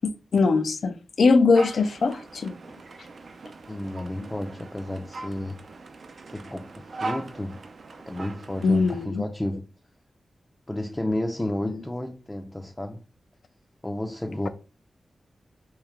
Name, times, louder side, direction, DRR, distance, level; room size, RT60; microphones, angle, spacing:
voice 1, 0.3-2.6 8.6-9.2, left 4 dB, 75° left, 0.4 m, -21 dB
sound 1, 1.5-9.1, right 3 dB, 70° right, 0.5 m, -40 dB
voice 2, 3.7-5.6 6.3-7.6 8.1-9.7 10.7-13.0 13.8-14.5, left 1 dB, 15° left, 0.4 m, -32 dB
3.3 x 3.1 x 3.5 m
wide cardioid pair, 75°, 0 cm